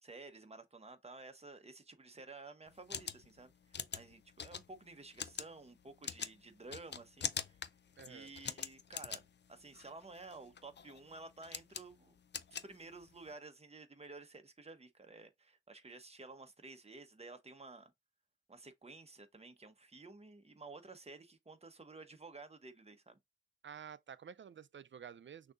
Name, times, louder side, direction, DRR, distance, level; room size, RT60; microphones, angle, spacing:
voice 1, 0.0-7.6 8.0-9.2 9.5-12.2 12.6-17.9 18.5-23.2, right 3 dB, 30° right, 0.9 m, -53 dB
sound 1, 2.7-13.3, left 7 dB, 60° left, 0.4 m, -45 dB
voice 2, 8.0-8.3 23.6-25.5, right 7 dB, 70° right, 0.4 m, -51 dB
6.1 x 2.8 x 2.4 m
wide cardioid pair, 90°, 20 cm